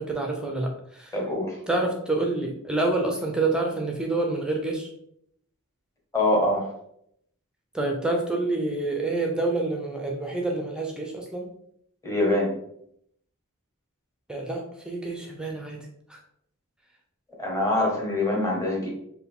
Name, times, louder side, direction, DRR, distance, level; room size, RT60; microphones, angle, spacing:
voice 1, 0.0-1.1 1.7-4.9 7.7-11.5 14.3-15.8 16.1-16.2, right 2 dB, 5° right, 1 dB, 0.4 m, -27 dB
voice 2, 1.1-1.6 6.1-6.7 12.0-12.5 17.4-18.9, left 1 dB, 15° left, -2 dB, 1.0 m, -24 dB
4.5 x 2.2 x 3.5 m, 0.71 s
head